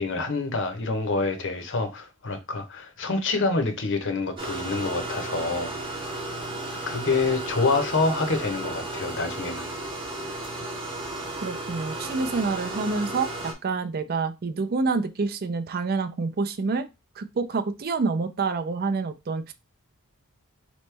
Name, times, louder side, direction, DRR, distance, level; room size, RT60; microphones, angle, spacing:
voice 1, 0.0-6.2 6.9-9.7, left 3 dB, 55° left, 0.9 m, -27 dB
sound 1, 4.4-13.5, right 2 dB, 25° right, 0.9 m, -34 dB
voice 2, 11.4-16.9 17.2-19.5, right 4 dB, 45° right, 0.4 m, -27 dB
4.2 x 3.1 x 3.3 m
head